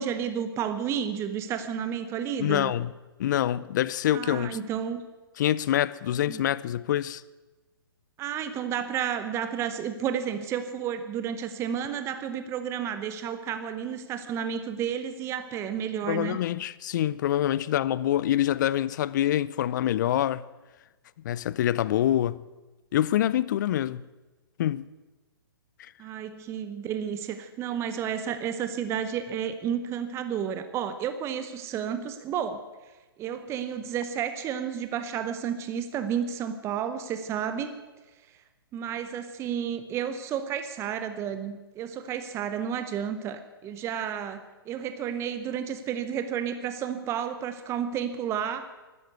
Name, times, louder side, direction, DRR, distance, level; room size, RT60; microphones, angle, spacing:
voice 1, 0.0-2.7 4.1-5.0 6.3-6.4 8.2-16.4 26.0-32.6 33.2-37.7 38.7-44.4 44.7-48.7, right 8 dB, 20° right, 0.9 m, -31 dB
voice 2, 2.4-2.9 3.2-4.6 5.4-7.2 16.1-20.4 21.2-22.4 22.9-24.0 24.6-24.9 25.8-25.9, left 12 dB, 50° left, 0.5 m, -26 dB
12.5 x 11.0 x 8.1 m
hypercardioid pair, 125°, 13 cm